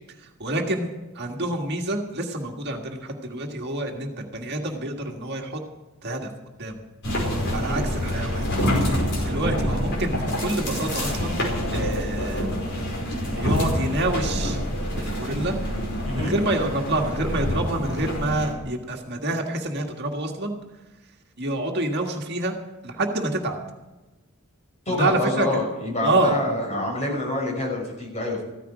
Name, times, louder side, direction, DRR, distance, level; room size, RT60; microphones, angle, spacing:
voice 1, 0.2-5.6 6.0-6.3 6.6-6.8 7.5-8.5 8.8-11.4 11.7-12.5 13.3-14.6 15.0-15.6 16.1-20.6 21.4-22.6 22.8-23.6 24.9-25.5 26.0-26.4, right 2 dB, 50° right, 2 dB, 1.7 m, -27 dB
sound 1, 7.0-18.5, equal, 55° left, 5.1 m, -26 dB
voice 2, 16.0-16.3 24.9-28.4, left 1 dB, 30° left, -1 dB, 5.7 m, -27 dB
15.5 x 14.0 x 5.0 m, 1.1 s
head